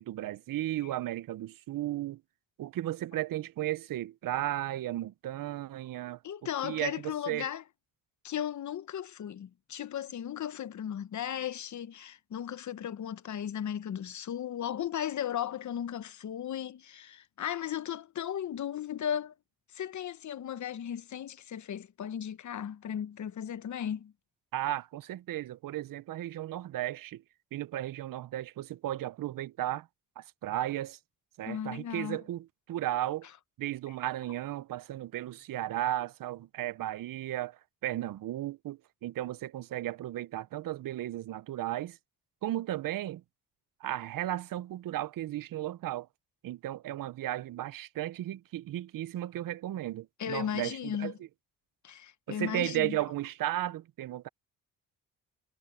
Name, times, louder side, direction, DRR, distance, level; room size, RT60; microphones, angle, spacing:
voice 1, 0.0-2.2 2.6-6.2 6.6-7.5 24.5-27.2 27.5-29.9 30.2-31.0 31.4-33.3 33.6-42.0 42.4-43.2 43.8-46.1 46.4-51.1 52.3-54.3, right 14 dB, 75° right, 0.7 m, -35 dB
voice 2, 6.2-7.6 8.2-19.3 19.7-24.1 31.5-32.2 50.2-51.1 51.8-53.0, left 9 dB, 55° left, 1.0 m, -36 dB
cardioid pair, 85°, 34 cm